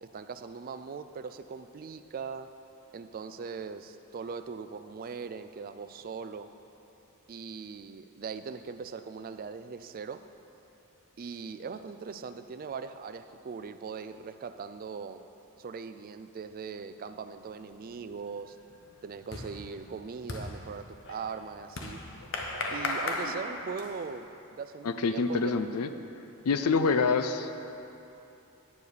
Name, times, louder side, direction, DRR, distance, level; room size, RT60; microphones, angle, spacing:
voice 1, 0.0-2.5 2.9-6.5 7.3-10.2 11.2-15.2 15.6-18.6 19.0-22.0 22.7-24.3 24.6-25.7 26.5-26.8, right 5 dB, 40° right, 10 dB, 0.3 m, -40 dB
sound 1, 17.7-18.1 18.4-24.2, left 2 dB, 55° left, 0.9 m, -37 dB
voice 2, 24.8-25.9 26.4-27.7, left 4 dB, 80° left, 9 dB, 0.5 m, -26 dB
9.5 x 7.1 x 4.9 m, 3.0 s
head